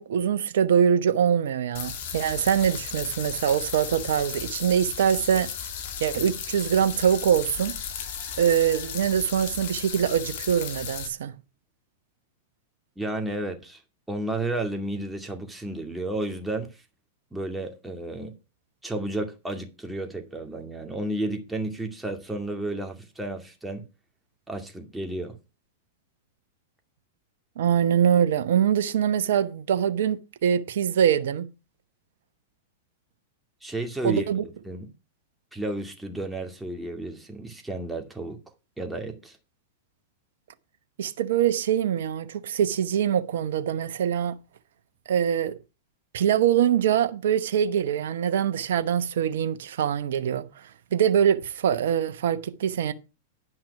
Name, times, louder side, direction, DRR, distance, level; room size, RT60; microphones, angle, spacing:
voice 1, 0.0-5.5 6.0-7.8 8.4-11.3 27.6-31.5 34.0-34.4 41.0-44.3 45.1-45.6 46.1-50.4 50.9-52.9, right 8 dB, 65° right, 0.9 m, -23 dB
sound 1, 1.7-11.1, left 8 dB, 60° left, 2.4 m, -35 dB
voice 2, 13.0-13.8 14.1-16.7 17.3-18.3 18.8-23.9 24.5-25.3 33.6-34.9 35.5-38.4 38.8-39.4, right 2 dB, 5° right, 2.3 m, -32 dB
10.5 x 5.9 x 5.9 m
hypercardioid pair, 105°, 0 cm